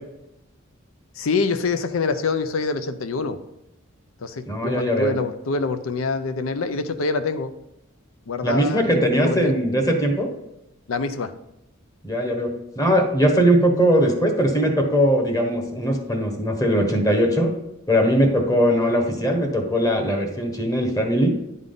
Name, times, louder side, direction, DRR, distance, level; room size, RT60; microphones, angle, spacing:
voice 1, 1.2-3.4 4.2-7.5 8.3-9.5 10.9-11.3, left 4 dB, 85° left, 10 dB, 0.5 m, -25 dB
voice 2, 4.5-5.1 8.4-10.3 12.0-17.5 17.9-21.3, equal, 20° left, 3 dB, 1.2 m, -20 dB
10.5 x 3.7 x 3.8 m, 0.88 s
head